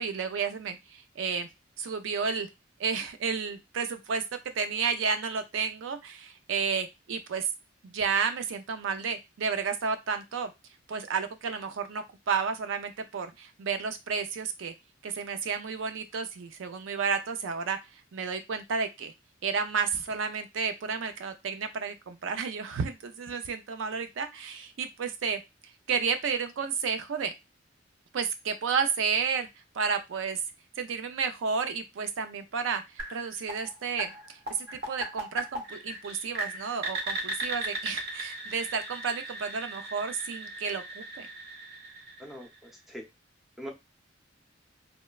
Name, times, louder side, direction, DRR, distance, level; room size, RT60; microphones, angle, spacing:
voice 1, 0.0-1.5 1.8-2.5 2.8-4.2 4.5-7.5 7.8-10.5 10.9-14.7 15.0-17.8 18.1-19.1 19.4-25.4 25.9-27.3 28.1-29.5 29.7-30.4 30.8-34.4 34.7-41.3, right 5 dB, 75° right, 8 dB, 0.4 m, -31 dB
sound 1, 33.0-42.8, right 1 dB, 55° right, 0.9 m, -38 dB
voice 2, 42.2-43.0 43.6-43.7, equal, ahead, 0 dB, 0.6 m, -42 dB
2.9 x 2.1 x 2.3 m, 0.22 s
head